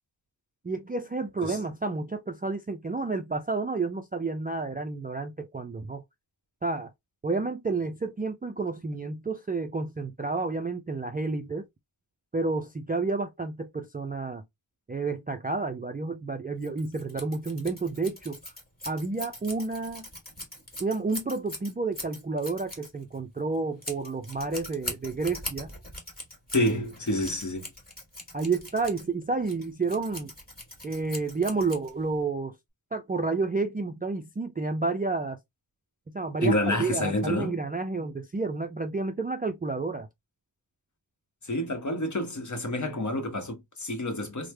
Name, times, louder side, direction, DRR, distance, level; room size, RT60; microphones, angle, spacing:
voice 1, 0.6-6.0 6.6-6.9 7.2-11.7 12.3-14.4 14.9-18.5 18.8-20.1 20.8-25.7 28.3-30.3 30.8-32.6 32.9-35.4 36.1-40.1, right 3 dB, 20° right, 0.3 m, -30 dB
Scissors, 16.6-32.2, left 1 dB, 20° left, 1.6 m, -42 dB
voice 2, 26.5-27.7 36.4-37.6 41.4-44.5, left 1 dB, 40° left, 0.9 m, -28 dB
3.2 x 2.1 x 3.1 m
wide cardioid pair, 75°, 45 cm